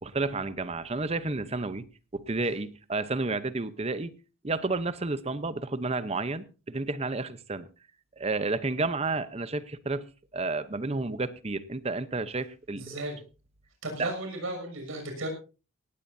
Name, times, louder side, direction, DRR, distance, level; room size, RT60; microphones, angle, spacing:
voice 1, 0.0-1.9 2.1-4.1 4.4-7.7 8.2-10.1 10.3-12.8 14.0-14.1, right 3 dB, 30° right, 13 dB, 0.8 m, -31 dB
voice 2, 12.7-13.2 13.8-15.3, right 2 dB, 85° right, 4 dB, 6.6 m, -34 dB
18.0 x 15.5 x 2.7 m, 0.33 s
head